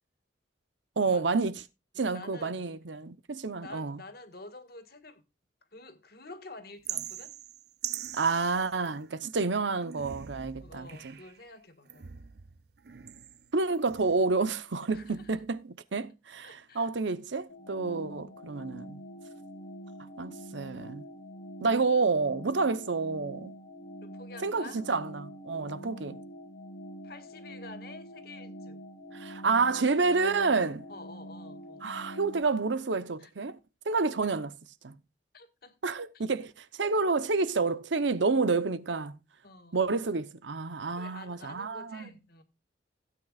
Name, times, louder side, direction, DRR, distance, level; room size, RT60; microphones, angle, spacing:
voice 1, 1.0-1.5 2.0-4.0 8.1-11.2 13.5-19.0 20.2-21.0 21.6-23.5 24.4-26.2 29.1-30.9 31.8-33.6 33.9-34.5 34.8-34.9 35.8-39.2 39.7-42.1, right 4 dB, 80° right, 0.8 m, -29 dB
voice 2, 2.1-2.6 3.6-5.2 5.7-7.3 10.6-12.2 14.9-15.4 16.4-16.9 24.0-24.8 27.0-28.8 30.9-31.9 33.2-33.3 35.3-35.7 36.1-36.2 39.4-39.8 40.9-42.4, left 2 dB, 55° left, 1.7 m, -49 dB
sound 1, 6.8-9.3 9.8-11.4 11.8-14.4 14.7-15.4, right 10 dB, 60° right, 0.5 m, -43 dB
sound 2, 17.5-32.4, equal, 85° left, 2.1 m, -45 dB
16.5 x 9.0 x 2.4 m
head